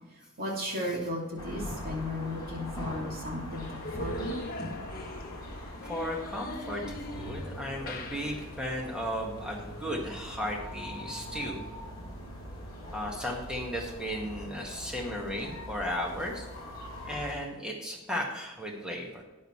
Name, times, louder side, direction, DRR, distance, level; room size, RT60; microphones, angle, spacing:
voice 1, 0.4-4.4 4.8-4.9, left 1 dB, 45° right, -2 dB, 2.7 m, -35 dB
sound 1, 1.4-17.3, equal, 20° left, 4.1 m, -42 dB
sound 2, 3.5-10.9, left 2 dB, 40° left, 1.0 m, -43 dB
voice 2, 5.9-11.6 12.9-16.5 17.0-19.2, equal, 5° right, -1 dB, 1.8 m, -35 dB
13.0 x 9.4 x 3.3 m, 1.1 s
head